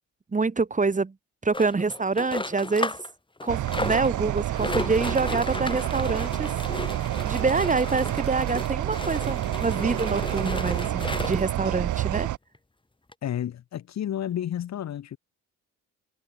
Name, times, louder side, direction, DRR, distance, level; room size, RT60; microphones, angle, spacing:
voice 1, 0.3-1.1 1.4-2.9 3.4-6.5 7.2-12.3, right 4 dB, 25° right, 3.5 m, -26 dB
sound 1, 1.5-3.1 3.4-11.6 12.2-12.3 12.5-12.6 13.1-13.2, left 2 dB, 15° left, 3.6 m, -35 dB
sound 2, 3.5-12.4, right 13 dB, 75° right, 1.8 m, -28 dB
voice 2, 13.2-15.2, left 10 dB, 60° left, 1.9 m, -31 dB
cardioid pair, 90°, 30 cm